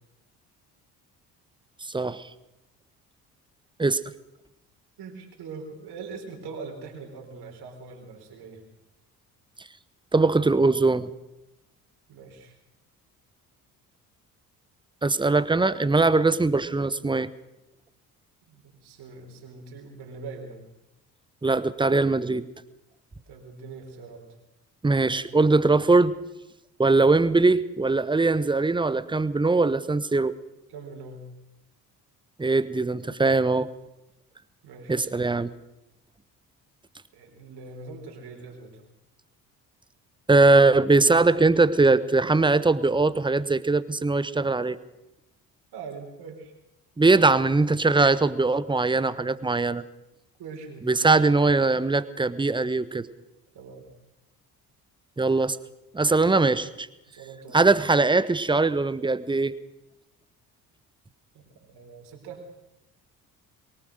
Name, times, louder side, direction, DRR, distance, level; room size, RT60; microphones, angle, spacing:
voice 1, 5.0-8.6 12.1-12.5 18.5-20.6 23.3-24.3 30.7-31.3 34.6-35.3 37.1-38.8 45.7-46.5 50.4-51.3 53.5-53.9 57.1-57.8 61.3-62.4, right 4 dB, 55° right, 2 dB, 4.6 m, -42 dB
voice 2, 10.1-11.1 15.0-17.3 21.4-22.4 24.8-26.1 26.8-30.4 32.4-33.7 34.9-35.5 40.3-44.8 47.0-49.8 50.9-53.1 55.2-55.6 55.9-56.9 57.5-59.5, right 3 dB, 10° right, 16 dB, 1.1 m, -21 dB
23.0 x 18.5 x 6.5 m, 0.90 s
figure-of-eight pair, 50°, 47 cm